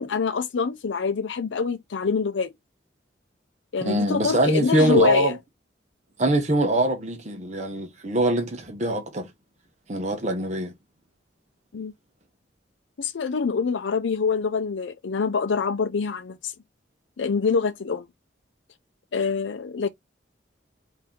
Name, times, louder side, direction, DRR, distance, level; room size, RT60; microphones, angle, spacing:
voice 1, 0.0-2.5 3.7-5.4 11.7-11.9 13.0-16.5 17.2-18.1 19.1-19.9, left 5 dB, 85° left, 0.5 m, -25 dB
voice 2, 3.8-5.3 6.2-9.3 9.9-10.7, right 1 dB, 40° right, 0.9 m, -23 dB
4.2 x 2.7 x 3.6 m
head